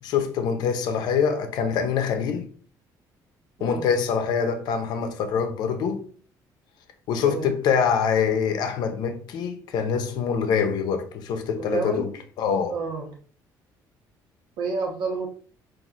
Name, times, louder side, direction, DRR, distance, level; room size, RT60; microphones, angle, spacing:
voice 1, 0.0-2.5 3.6-6.0 7.1-12.1 12.4-12.8, left 6 dB, 70° left, 0.6 m, -24 dB
voice 2, 11.5-12.1 12.7-13.2 14.6-15.3, right 4 dB, 75° right, 1.1 m, -29 dB
5.5 x 2.6 x 2.5 m
cardioid pair, 175°, 7 cm